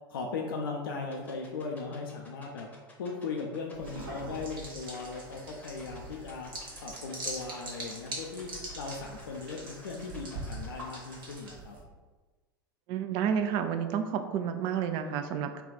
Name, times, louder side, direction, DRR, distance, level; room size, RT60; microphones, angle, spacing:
voice 1, 0.1-2.7 3.0-6.5 6.8-11.8, left 4 dB, 70° left, 1 dB, 0.4 m, -38 dB
sound 1, 1.1-11.3, left 3 dB, 10° left, 0.8 m, -53 dB
sound 2, 3.7-11.8, right 2 dB, 70° right, 1.0 m, -42 dB
voice 2, 12.9-15.6, right 8 dB, 40° right, 8 dB, 0.3 m, -30 dB
3.3 x 2.3 x 3.9 m, 1.3 s
figure-of-eight pair, 80°, 12 cm